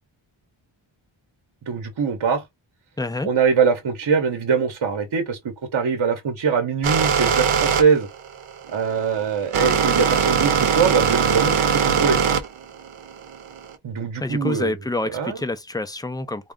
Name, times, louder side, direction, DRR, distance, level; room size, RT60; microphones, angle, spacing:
voice 1, 1.7-2.4 3.2-8.1 8.7-12.2 13.8-14.7 15.1-15.4, right 6 dB, 55° right, 0.9 m, -22 dB
voice 2, 3.0-3.3 14.2-16.5, left 2 dB, 10° left, 0.4 m, -27 dB
sound 1, 6.8-13.8, right 7 dB, 90° right, 0.8 m, -21 dB
3.5 x 2.3 x 3.7 m
wide cardioid pair, 110°, 49 cm